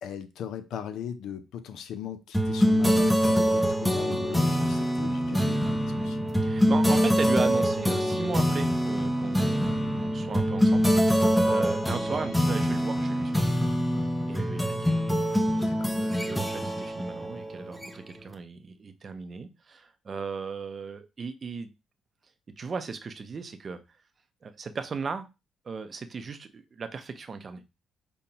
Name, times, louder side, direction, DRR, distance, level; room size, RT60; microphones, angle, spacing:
voice 1, 0.0-6.3 15.6-16.0, left 8 dB, 80° left, 0.5 m, -39 dB
sound 1, 2.3-18.2, equal, 5° left, 0.6 m, -25 dB
voice 2, 6.4-13.6 14.3-15.0 16.0-21.7 22.6-23.8 24.4-25.3 25.6-27.6, right 5 dB, 40° right, 0.5 m, -36 dB
5.2 x 2.2 x 2.8 m
cardioid pair, 90°, 0 cm